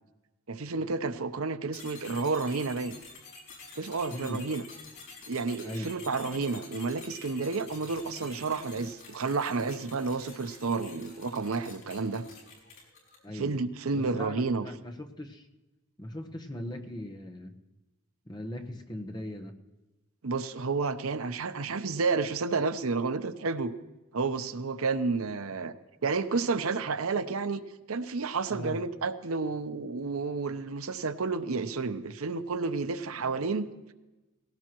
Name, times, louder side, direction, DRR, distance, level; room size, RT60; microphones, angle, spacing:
voice 1, 0.5-3.0 3.8-4.6 5.3-12.2 13.3-14.6 20.2-23.7 24.1-25.7 26.0-27.6 27.9-33.9, right 4 dB, 80° right, 11 dB, 0.7 m, -31 dB
sound 1, 1.7-13.3, left 4 dB, 70° left, 5.7 m, -48 dB
voice 2, 4.1-4.5 5.6-5.9 13.2-13.5 13.9-15.5 16.0-17.6 18.3-19.6 28.5-28.8, left 1 dB, 20° left, 4 dB, 1.0 m, -39 dB
19.0 x 17.0 x 3.0 m, 1.1 s
head